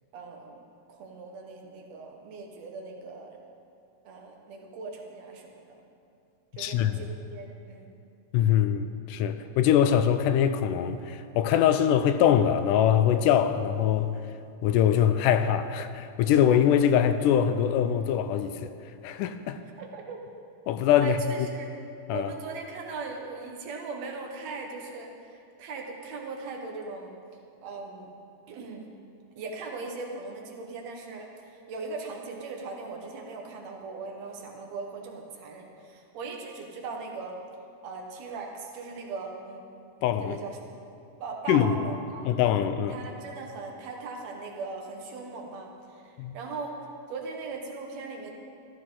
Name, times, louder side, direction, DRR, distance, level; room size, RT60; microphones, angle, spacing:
voice 1, 0.1-0.6 0.9-3.4 4.0-5.6 6.5-7.9 19.8-20.2 21.0-21.7 22.1-27.2 27.6-28.1 28.5-28.9 29.4-37.4 37.8-39.6 40.2-40.7 41.2-42.3 42.9-46.7 47.1-48.3, right 4 dB, 60° right, 2.3 m, -39 dB
voice 2, 6.5-7.0 8.3-14.1 14.6-18.7 19.0-19.6 20.7-21.2 22.1-22.3 40.0-40.4 41.5-41.9 42.2-43.0 46.2-46.3, left 9 dB, 80° left, 2.1 m, -23 dB
14.5 x 14.0 x 3.8 m
omnidirectional pair, 3.8 m